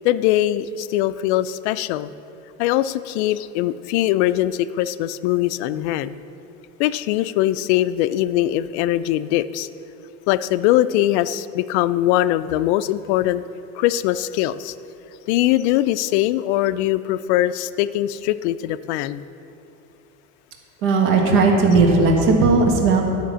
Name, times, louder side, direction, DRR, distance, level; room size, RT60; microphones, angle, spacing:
voice 1, 0.0-2.1 2.6-6.2 6.8-9.7 10.3-13.4 13.8-14.7 15.3-19.2, left 14 dB, 70° left, 14 dB, 0.5 m, -21 dB
voice 2, 20.8-23.0, right 3 dB, 65° right, 1 dB, 1.7 m, -16 dB
11.0 x 5.9 x 7.4 m, 2.8 s
cardioid pair, 155°, 35 cm